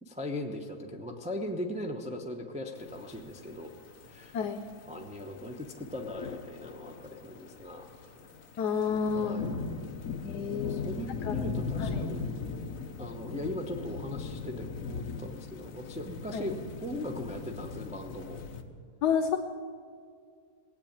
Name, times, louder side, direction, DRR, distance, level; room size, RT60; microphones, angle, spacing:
voice 1, 0.0-3.7 4.1-4.4 4.9-7.9 9.1-9.5 10.5-12.3 13.0-18.4, left 1 dB, 5° right, 2 dB, 0.7 m, -39 dB
sound 1, 2.8-18.6, left 5 dB, 60° left, 1.3 m, -39 dB
voice 2, 8.6-9.4 10.1-10.9 11.2-11.4 11.8-12.0 16.3-16.4 19.0-19.4, left 6 dB, 85° left, 6 dB, 1.3 m, -30 dB
18.0 x 8.4 x 8.8 m, 2.1 s
omnidirectional pair, 1.7 m